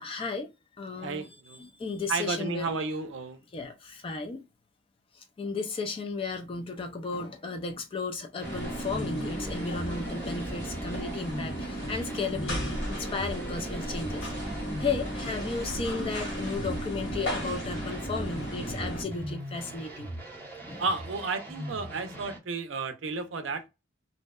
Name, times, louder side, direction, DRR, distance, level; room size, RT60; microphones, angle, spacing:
voice 1, 0.0-2.7 3.5-4.4 5.1-20.1 20.7-20.8, left 4 dB, 30° left, 0.3 m, -34 dB
voice 2, 1.0-1.6 2.1-3.4 20.8-23.7, right 4 dB, 70° right, 0.5 m, -32 dB
sound 1, 8.4-19.0, equal, 70° left, 1.2 m, -35 dB
sound 2, 8.4-22.4, right 1 dB, 10° left, 0.7 m, -41 dB
2.6 x 2.1 x 2.2 m
head